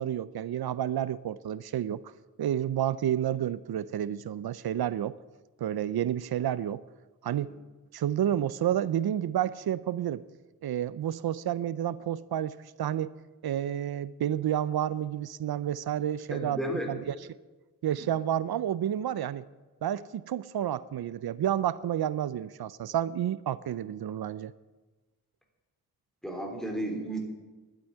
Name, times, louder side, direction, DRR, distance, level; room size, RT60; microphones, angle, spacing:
voice 1, 0.0-2.1 2.4-5.2 5.6-6.8 7.2-7.5 7.9-10.2 10.6-13.2 13.4-16.6 16.9-17.1 17.8-19.4 19.8-24.5, right 10 dB, 85° right, 18 dB, 0.5 m, -30 dB
voice 2, 16.3-16.9 26.2-27.2, right 1 dB, ahead, 1 dB, 3.2 m, -33 dB
11.5 x 9.1 x 9.4 m, 1.2 s
wide cardioid pair, 125°, 37 cm